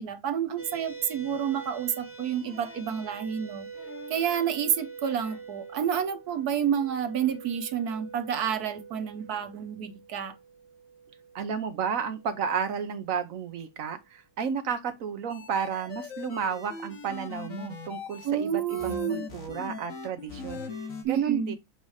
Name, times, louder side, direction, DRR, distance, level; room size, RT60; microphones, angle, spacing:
voice 1, 0.0-3.7 4.1-10.3 18.2-19.3 21.0-21.5, right 8 dB, 60° right, 1.2 m, -29 dB
sound 1, 0.6-13.2, right 5 dB, 10° right, 0.6 m, -45 dB
sound 2, 2.4-2.9 3.7-4.3 5.0-5.5 6.8-6.9, left 3 dB, 65° left, 3.3 m, -49 dB
voice 2, 11.3-20.8 21.1-21.6, right 7 dB, 75° right, 0.7 m, -32 dB
sound 3, 15.3-18.3 18.7-21.0, left 4 dB, 45° left, 1.6 m, -39 dB
7.9 x 2.7 x 4.8 m
omnidirectional pair, 2.2 m